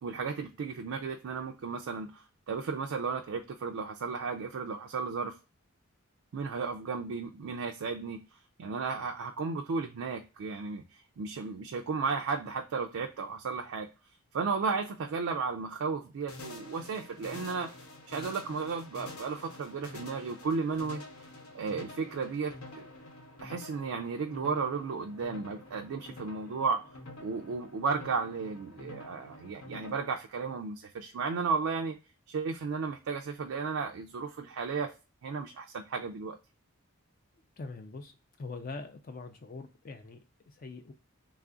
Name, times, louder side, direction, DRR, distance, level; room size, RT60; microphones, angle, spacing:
voice 1, 0.0-5.3 6.3-8.2 8.6-13.9 14.3-17.7 18.1-21.0 21.5-22.9 23.4-26.8 27.2-32.0 32.3-34.9 35.2-36.4, right 5 dB, 70° right, 4 dB, 0.3 m, -34 dB
sound 1, 16.3-29.9, left 2 dB, 80° left, 0.8 m, -48 dB
voice 2, 37.6-40.9, left 3 dB, 40° left, 7 dB, 0.3 m, -43 dB
3.2 x 2.4 x 3.6 m, 0.31 s
head